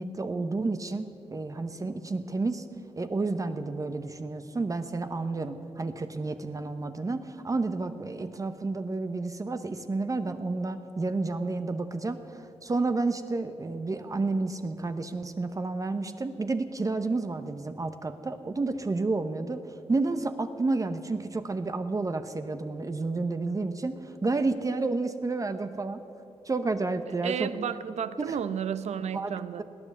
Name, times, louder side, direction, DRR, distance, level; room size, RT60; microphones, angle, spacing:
voice 1, 0.0-2.6 3.0-19.6 19.9-26.0 26.4-27.5 28.2-28.4 29.1-29.6, right 3 dB, 30° right, 9 dB, 0.9 m, -30 dB
voice 2, 27.2-29.6, right 8 dB, 70° right, 14 dB, 0.7 m, -32 dB
18.0 x 9.7 x 8.3 m, 2.8 s
cardioid pair, 85°, 12 cm